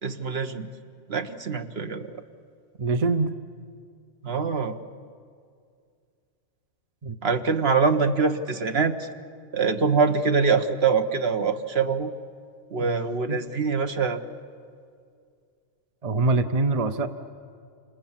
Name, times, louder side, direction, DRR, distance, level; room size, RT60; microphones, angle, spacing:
voice 1, 0.0-0.7 1.1-2.2 4.2-4.7 7.2-9.1 9.5-12.1 12.7-14.2, right 5 dB, 55° right, 7 dB, 1.5 m, -24 dB
voice 2, 2.8-3.3 7.0-7.2 12.8-12.9 13.3-13.4 16.0-17.1, right 3 dB, 35° right, 9 dB, 0.9 m, -24 dB
29.0 x 27.5 x 7.4 m, 2.2 s
omnidirectional pair, 1.3 m